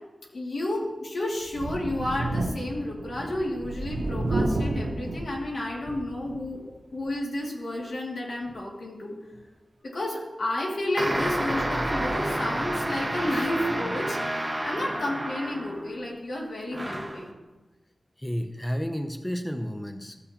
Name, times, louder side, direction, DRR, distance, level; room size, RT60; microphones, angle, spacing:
voice 1, 0.3-6.6 6.9-9.2 9.8-17.3, left 1 dB, 75° left, -3 dB, 2.3 m, -31 dB
Thunder, 1.5-6.6 7.0-7.1 8.5-8.6, right 2 dB, 85° right, 1.0 m, -31 dB
sound 1, 11.0-16.0 16.7-17.3, right 1 dB, 15° right, 1.1 m, -30 dB
voice 2, 18.2-20.2, equal, 10° left, 7 dB, 0.6 m, -32 dB
14.0 x 7.9 x 2.9 m, 1.1 s
wide cardioid pair, 85°, 0 cm